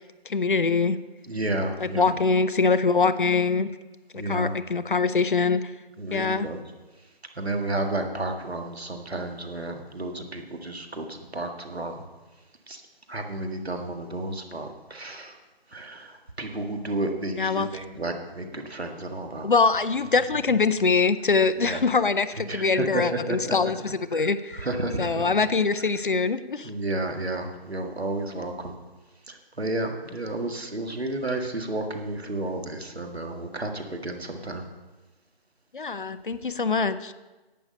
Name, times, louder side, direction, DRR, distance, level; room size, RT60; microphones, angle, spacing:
voice 1, 0.3-1.0 1.8-3.7 4.1-5.6 6.1-6.5 17.4-17.7 19.4-24.7 25.0-26.7 35.7-37.1, left 4 dB, 55° left, 13 dB, 0.6 m, -23 dB
voice 2, 1.3-2.1 4.2-4.5 6.0-6.6 7.4-12.0 12.7-12.8 13.1-15.4 15.7-19.5 21.6-21.8 22.5-23.7 24.1-25.3 26.6-28.8 29.3-34.7, right 2 dB, 90° right, 4 dB, 1.8 m, -32 dB
11.0 x 8.5 x 5.4 m, 1.2 s
figure-of-eight pair, 165°, 31 cm